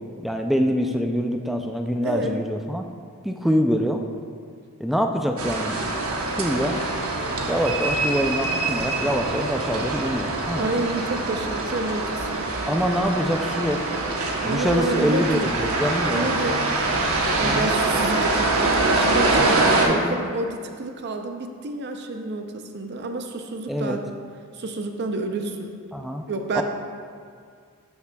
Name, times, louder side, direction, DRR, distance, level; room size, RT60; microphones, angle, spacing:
voice 1, 0.2-2.8 3.2-4.0 4.8-5.9 6.3-6.8 7.5-10.7 12.7-13.8 14.4-16.3 17.4-17.7 19.4-20.2 23.7-24.0 25.9-26.2 26.5-26.6, equal, ahead, 4 dB, 0.3 m, -25 dB
voice 2, 2.0-2.4 10.6-12.5 14.4-15.5 16.1-16.6 17.4-24.0 24.6-25.7 26.3-26.6, right 2 dB, 50° right, 5 dB, 0.5 m, -29 dB
sound 1, 5.4-19.9, right 2 dB, 80° right, 0.9 m, -24 dB
12.0 x 5.8 x 2.3 m, 2.2 s
head